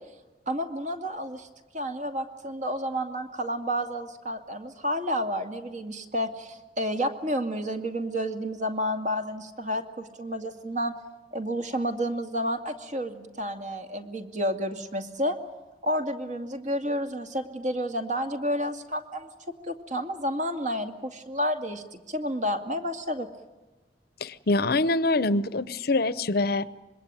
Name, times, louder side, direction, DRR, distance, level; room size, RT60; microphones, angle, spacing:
voice 1, 0.5-1.5 1.7-10.9 11.3-15.4 15.8-19.3 19.7-23.3, equal, 45° right, 5 dB, 2.2 m, -30 dB
voice 2, 24.2-26.7, left 2 dB, 55° left, 16 dB, 0.8 m, -25 dB
26.0 x 21.5 x 9.2 m, 1.2 s
head